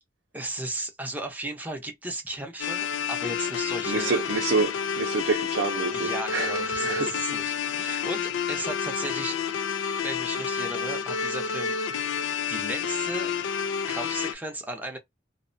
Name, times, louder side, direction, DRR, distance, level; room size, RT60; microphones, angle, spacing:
voice 1, 0.3-4.2 5.9-9.4 10.0-13.4 13.9-15.0, right 1 dB, 10° right, 0.6 m, -35 dB
sound 1, 2.6-14.3, left 6 dB, 80° left, 0.3 m, -29 dB
voice 2, 3.8-7.2 7.5-8.1, right 3 dB, 70° right, 0.5 m, -28 dB
2.4 x 2.1 x 2.5 m
head